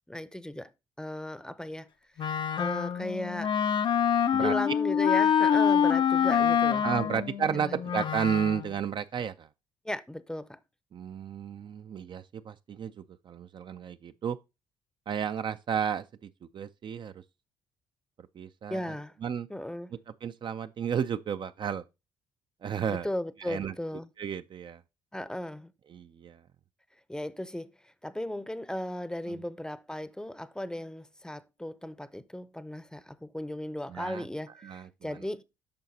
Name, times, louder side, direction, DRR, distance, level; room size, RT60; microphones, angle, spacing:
voice 1, 0.1-0.7 1.0-1.9 2.2-2.3 2.6-3.5 4.4-7.1 7.5-7.8 9.8-10.6 18.7-19.1 19.5-19.9 22.9-24.1 25.1-25.7 27.1-35.4, left 1 dB, 5° left, 0.6 m, -36 dB
Wind instrument woodwind instrument, 2.2-8.7, left 8 dB, 45° left, 0.5 m, -26 dB
voice 2, 6.8-9.5 10.9-12.9 13.3-14.4 15.1-16.1 16.5-17.1 18.4-18.8 19.2-19.5 20.2-21.8 22.6-23.1 23.5-23.7 24.2-24.8 25.9-26.4 29.3-29.4 33.9-34.2 34.6-35.2, right 8 dB, 45° right, 0.4 m, -32 dB
8.7 x 5.7 x 2.7 m
hypercardioid pair, 60°, 11 cm